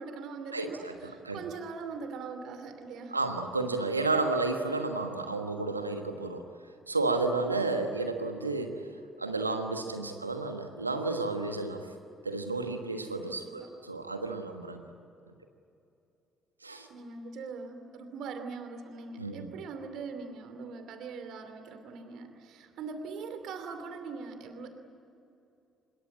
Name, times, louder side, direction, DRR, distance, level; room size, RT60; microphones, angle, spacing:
voice 1, 0.0-3.2 13.4-13.7 16.9-24.7, right 4 dB, 60° right, 7 dB, 2.7 m, -41 dB
voice 2, 0.5-1.4 3.1-6.4 6.9-8.8 9.2-11.9 12.2-14.8 16.6-16.9 19.2-19.5, right 3 dB, 90° right, 6 dB, 1.3 m, -32 dB
25.0 x 22.0 x 8.6 m, 2.7 s
figure-of-eight pair, 45°, 0 cm